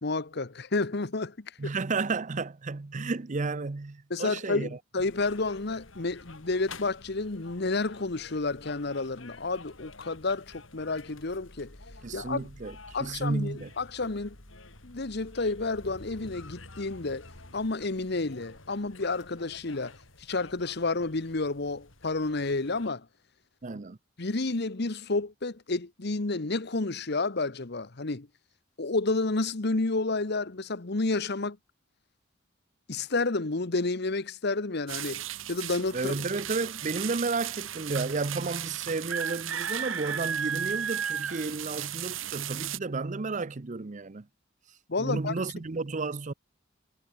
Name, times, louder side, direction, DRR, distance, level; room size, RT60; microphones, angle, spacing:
voice 1, 0.0-1.7 4.1-11.8 12.1-12.4 12.9-14.4 14.8-17.3 17.5-20.0 20.3-23.0 24.2-28.3 28.8-31.6 32.9-35.2 35.5-36.1 44.9-45.3, left 3 dB, 55° left, 1.2 m, -30 dB
voice 2, 1.6-4.8 12.0-13.7 23.6-24.0 35.9-44.3 45.0-46.3, right 3 dB, 40° right, 0.6 m, -32 dB
sound 1, 5.0-22.9, left 3 dB, 80° left, 6.1 m, -50 dB
sound 2, 34.9-42.8, right 9 dB, 85° right, 2.4 m, -34 dB
head